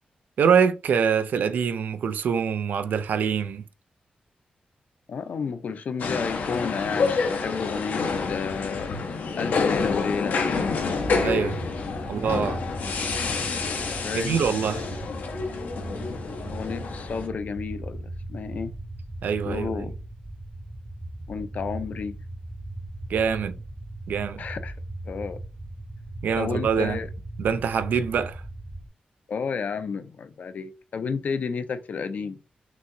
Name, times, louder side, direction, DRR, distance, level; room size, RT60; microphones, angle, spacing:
voice 1, 0.4-3.6 11.2-11.6 12.0-12.6 14.1-14.9 19.2-19.9 23.1-23.6 24.1-24.4 26.2-27.0 27.4-28.4, right 7 dB, 85° right, 0.4 m, -24 dB
voice 2, 5.1-8.9 9.4-10.4 14.0-14.4 15.9-16.2 16.5-18.7 19.4-19.9 21.3-22.2 24.4-24.7 25.0-25.4 26.4-27.1 29.3-32.4, left 5 dB, 60° left, 0.5 m, -31 dB
sound 1, 6.0-17.3, left 4 dB, 90° left, 0.9 m, -28 dB
sound 2, 10.9-28.9, right 1 dB, 10° right, 0.4 m, -38 dB
6.0 x 2.8 x 2.6 m
wide cardioid pair, 150°, 3 cm